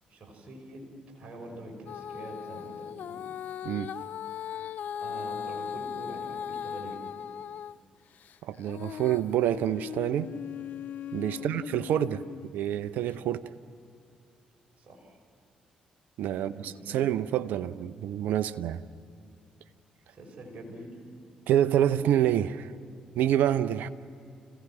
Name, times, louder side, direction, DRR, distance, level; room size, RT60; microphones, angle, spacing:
voice 1, 0.1-0.9 1.1-3.3 4.9-7.0 11.3-11.5 14.8-15.2 16.4-17.0 20.1-21.0, right 1 dB, 45° right, 0 dB, 5.8 m, -45 dB
Female singing, 1.9-7.8 8.2-12.5 13.1-13.2, left 9 dB, 60° left, 0.4 m, -38 dB
voice 2, 8.4-10.3 11.1-13.4 16.2-18.8 21.5-22.7 23.1-23.9, right 11 dB, 70° right, 13 dB, 0.7 m, -27 dB
29.5 x 16.0 x 6.2 m, 2.5 s
hypercardioid pair, 45°, 3 cm